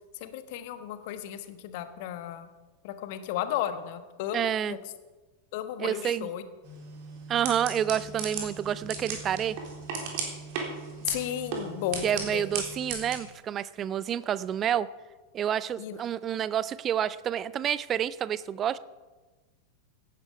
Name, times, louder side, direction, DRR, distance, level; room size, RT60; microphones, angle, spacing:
voice 1, 0.2-2.5 2.8-4.8 5.5-6.4 11.0-12.5 15.8-16.0, left 11 dB, 50° left, 10 dB, 1.2 m, -34 dB
voice 2, 4.3-4.8 5.8-6.3 7.3-9.6 12.0-14.9 15.3-18.8, right 9 dB, 30° right, 18 dB, 0.5 m, -29 dB
sound 1, 6.6-13.2, right 5 dB, 45° right, 3.5 m, -36 dB
17.5 x 10.5 x 5.1 m, 1.3 s
figure-of-eight pair, 90°, 0 cm